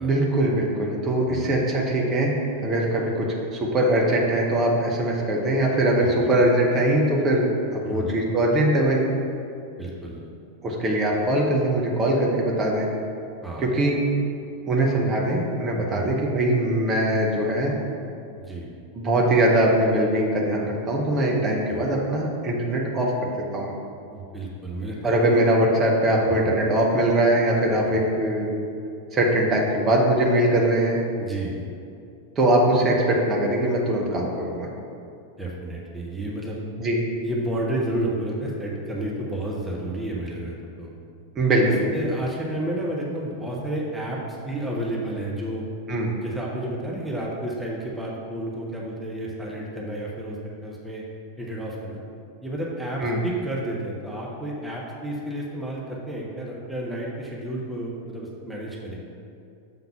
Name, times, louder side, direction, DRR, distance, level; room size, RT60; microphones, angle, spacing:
voice 1, 0.0-2.3 2.6-9.1 10.6-12.9 13.6-14.0 14.7-17.7 18.9-23.7 25.0-28.5 29.1-31.0 32.4-34.7 36.8-37.0 41.3-41.9 45.9-46.1 53.0-53.2, right 1 dB, 25° right, -2 dB, 1.0 m, -22 dB
voice 2, 1.3-1.6 6.0-6.3 7.8-8.1 9.8-10.3 13.4-13.7 15.9-16.1 18.4-18.7 21.7-21.9 24.1-25.4 26.3-26.5 31.2-31.6 35.4-36.6 37.2-40.9 41.9-45.7 46.2-51.1 51.4-52.0 52.4-59.0, right 1 dB, 5° right, -4 dB, 1.0 m, -31 dB
7.1 x 3.8 x 5.7 m, 2.6 s
figure-of-eight pair, 90°, 0 cm